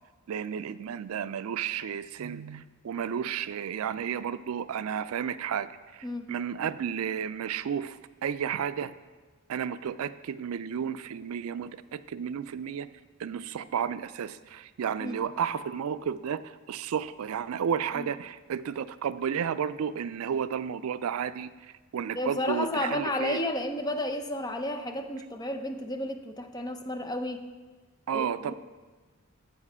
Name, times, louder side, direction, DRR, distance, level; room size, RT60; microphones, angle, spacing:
voice 1, 0.3-5.7 6.3-8.9 9.5-12.9 13.2-21.5 21.9-23.4 28.1-28.5, right 8 dB, 80° right, 15 dB, 0.4 m, -32 dB
voice 2, 22.1-27.4 28.1-28.5, left 1 dB, 20° left, 6 dB, 0.6 m, -32 dB
8.1 x 7.4 x 5.5 m, 1.3 s
head